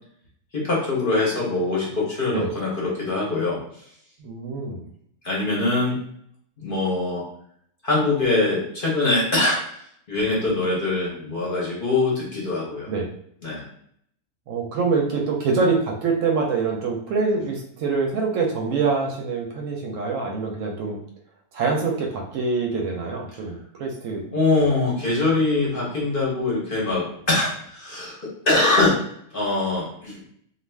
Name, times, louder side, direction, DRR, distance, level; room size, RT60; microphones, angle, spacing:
voice 1, 0.5-3.6 5.2-6.0 6.6-7.2 7.8-12.9 13.4-13.7 24.3-28.2 28.4-29.0 29.3-30.2, left 2 dB, 45° left, -5 dB, 0.8 m, -23 dB
voice 2, 4.2-4.8 12.9-13.1 14.5-21.0 21.5-24.2, right 4 dB, 70° right, 0 dB, 0.9 m, -25 dB
2.4 x 2.3 x 3.3 m, 0.69 s
omnidirectional pair, 1.5 m